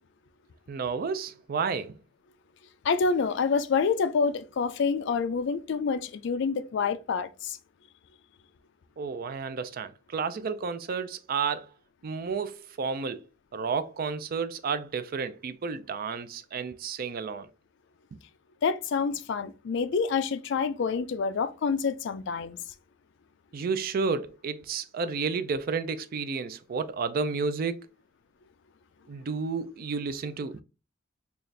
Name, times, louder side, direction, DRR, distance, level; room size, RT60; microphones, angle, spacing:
voice 1, 0.7-2.0 9.0-11.7 12.0-13.2 13.5-17.5 18.1-18.2 23.5-27.9 29.1-30.6, right 5 dB, 45° right, 0.4 m, -31 dB
voice 2, 2.8-7.6 18.6-22.6, left 5 dB, 60° left, 0.4 m, -27 dB
4.0 x 2.4 x 3.2 m
head